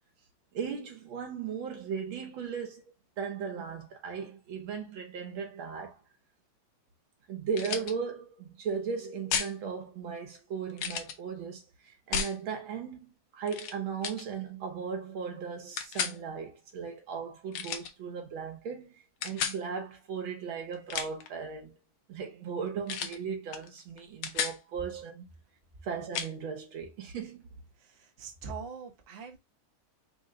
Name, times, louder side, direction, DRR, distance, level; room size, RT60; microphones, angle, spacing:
voice 1, 0.5-2.8 3.2-6.0 7.3-21.8 22.1-25.3 25.8-27.4, right 6 dB, 75° right, 1.8 m, -37 dB
sound 1, 7.5-7.9 9.3-9.5 10.8-11.2 12.1-12.4 13.5-13.7 14.0-14.2 15.8-16.2 17.5-17.9 19.2-19.6 20.7-21.3 22.9-23.2 23.5-23.7 24.0-24.6 26.1-26.3, left 7 dB, 80° left, 1.5 m, -33 dB
voice 2, 27.8-29.4, right 5 dB, 45° right, 0.8 m, -43 dB
4.3 x 2.2 x 3.8 m
omnidirectional pair, 2.2 m